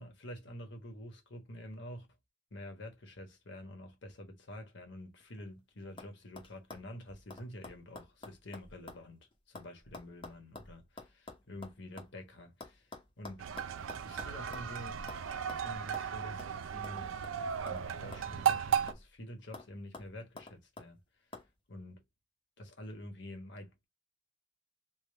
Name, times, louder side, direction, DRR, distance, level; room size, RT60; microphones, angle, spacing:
voice 1, 0.0-2.1 2.5-12.9 13.2-13.5 14.0-15.0 15.5-21.0 21.7-22.0 22.6-23.9, left 1 dB, 60° left, 1.2 m, -48 dB
sound 1, 5.2-5.6 6.0-6.1 6.4-9.1 9.3-12.1 12.6-14.7 15.1-15.2 15.5-15.6 15.9-16.1 16.4-16.5 16.8-17.9 18.1-19.2 19.5-19.7 19.9-20.9 21.3-21.5, left 2 dB, 25° left, 0.8 m, -49 dB
sound 2, 13.4-18.9, right 8 dB, 90° right, 0.4 m, -35 dB
3.6 x 2.2 x 3.3 m
head